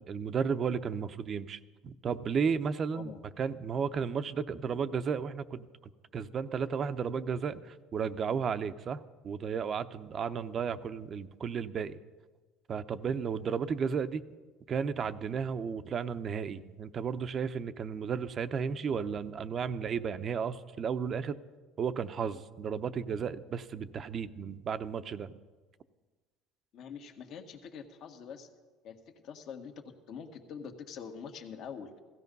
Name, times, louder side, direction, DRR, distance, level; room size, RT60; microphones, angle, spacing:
voice 1, 0.0-3.1 3.4-5.7 6.1-12.0 12.7-14.2 14.7-21.4 21.8-25.3, right 6 dB, 40° right, 12 dB, 0.7 m, -33 dB
voice 2, 26.7-28.5 28.8-32.0, left 6 dB, 60° left, 4 dB, 1.7 m, -45 dB
16.5 x 15.0 x 5.4 m, 1.3 s
supercardioid pair, 105°, 0 cm